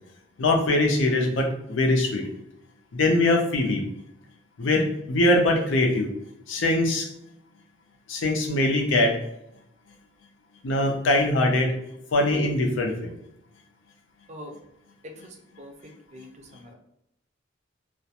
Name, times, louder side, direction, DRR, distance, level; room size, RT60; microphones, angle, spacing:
voice 1, 0.4-2.3 2.9-3.8 4.6-6.1 6.5-7.1 8.1-9.2 10.6-11.7 12.1-13.1, left 1 dB, 90° left, 2 dB, 0.5 m, -22 dB
voice 2, 15.0-15.7 16.1-16.7, equal, 40° right, 4 dB, 0.4 m, -42 dB
2.4 x 2.1 x 2.8 m, 0.79 s
head